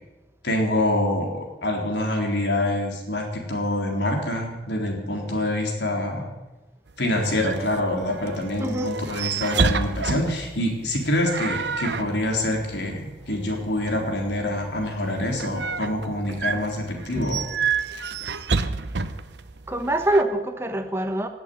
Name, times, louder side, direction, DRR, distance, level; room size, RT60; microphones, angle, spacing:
voice 1, 0.4-6.3 7.0-17.4, left 1 dB, 80° left, 1 dB, 3.8 m, -26 dB
sound 1, 6.9-20.2, right 5 dB, 75° right, 0.9 m, -30 dB
voice 2, 8.6-8.9 17.1-17.4 18.2-18.4 19.7-21.3, right 1 dB, 15° right, 6 dB, 1.1 m, -25 dB
18.0 x 8.2 x 9.4 m, 1.1 s
head